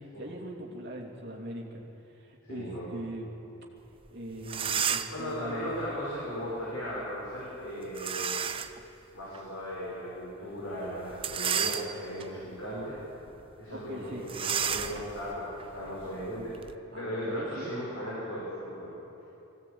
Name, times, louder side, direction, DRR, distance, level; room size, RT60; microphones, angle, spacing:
voice 1, 0.0-3.3 4.1-5.8 13.7-14.3 16.9-17.7, right 1 dB, 50° right, -1 dB, 2.9 m, -41 dB
voice 2, 2.5-2.9 5.1-8.4 9.1-13.0 13.6-16.5 16.9-18.9, equal, 75° left, -7 dB, 5.9 m, -37 dB
sound 1, 4.1-4.2 4.4-5.3 8.0-8.8 9.3-9.4 11.1-12.2 12.8-13.0 13.3-13.4 14.3-16.7, right 8 dB, 25° right, 0.6 m, -32 dB
22.0 x 17.0 x 8.7 m, 3.0 s
head